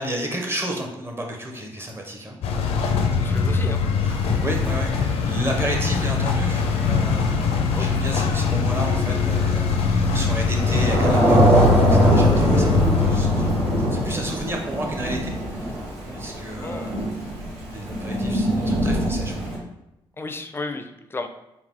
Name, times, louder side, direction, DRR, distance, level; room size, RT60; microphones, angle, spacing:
voice 1, 0.0-2.4 4.0-13.5 13.8-15.7 16.1-17.0 17.7-19.5, right 1 dB, 25° right, 1 dB, 0.9 m, -32 dB
sound 1, 2.4-14.3, left 5 dB, 90° left, 0.4 m, -22 dB
voice 2, 3.1-3.8 7.8-7.9 16.6-16.9 20.2-21.3, left 3 dB, 20° left, 6 dB, 0.4 m, -33 dB
Thunder / Rain, 4.1-19.6, right 1 dB, 85° right, 1.3 m, -23 dB
3.8 x 2.6 x 3.6 m, 0.91 s
cardioid pair, 75°, 10 cm